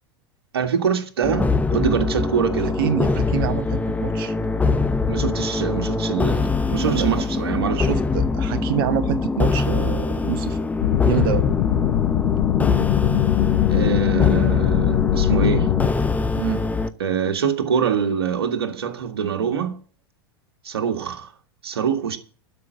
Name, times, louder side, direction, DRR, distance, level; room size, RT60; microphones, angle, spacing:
voice 1, 0.5-2.8 5.1-7.9 13.7-15.7 17.0-19.8 20.6-21.3 21.6-22.2, right 7 dB, 80° right, 1.8 m, -24 dB
sound 1, 1.2-16.9, left 4 dB, 10° left, 0.9 m, -23 dB
voice 2, 2.8-4.3 6.8-7.1 7.6-10.6 11.0-11.5 16.3-16.6, right 11 dB, 65° right, 1.0 m, -26 dB
sound 2, 10.8-15.9, left 16 dB, 65° left, 0.5 m, -21 dB
12.5 x 5.7 x 9.0 m
hypercardioid pair, 90°, 13 cm